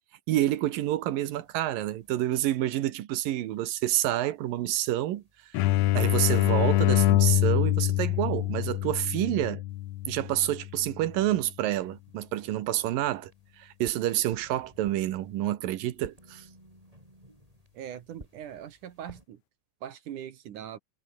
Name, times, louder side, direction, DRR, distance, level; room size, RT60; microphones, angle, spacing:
voice 1, 0.3-5.2 5.9-9.6 10.1-13.3 13.6-16.5, right 14 dB, 85° right, 2.9 m, -28 dB
sound 1, 0.8-2.7 3.2-6.6 7.1-9.2 9.7-15.4 15.9-19.3, right 1 dB, 10° right, 5.4 m, -58 dB
sound 2, 5.5-11.0, left 16 dB, 75° left, 1.8 m, -25 dB
voice 2, 17.7-19.4 19.8-20.8, right 10 dB, 70° right, 2.9 m, -41 dB
omnidirectional pair, 3.9 m